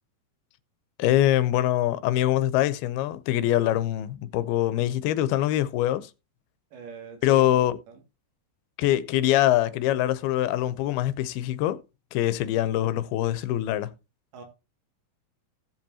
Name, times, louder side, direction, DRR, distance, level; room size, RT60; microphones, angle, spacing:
voice 1, 1.0-6.1 7.2-7.8 8.8-11.8 12.1-13.9, left 13 dB, 85° left, 2.7 m, -24 dB
voice 2, 6.7-8.0 14.3-14.4, right 6 dB, 90° right, 4.3 m, -42 dB
17.0 x 7.5 x 2.8 m
omnidirectional pair, 4.4 m